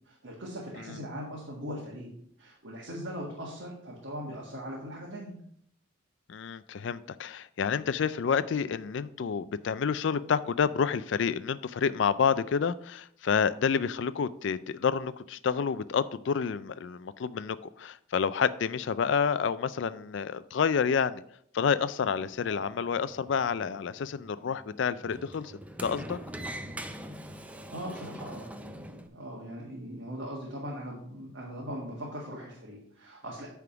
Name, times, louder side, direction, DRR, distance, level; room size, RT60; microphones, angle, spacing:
voice 1, 0.1-2.1 2.4-5.4 26.6-26.8 27.7-33.5, equal, 70° right, -4 dB, 1.7 m, -40 dB
voice 2, 6.3-21.2 21.5-25.5 25.8-26.2, left 6 dB, 65° left, 15 dB, 0.4 m, -29 dB
Sliding door, 22.0-29.1, right 1 dB, 5° right, 0.4 m, -43 dB
9.6 x 3.6 x 5.8 m, 0.67 s
head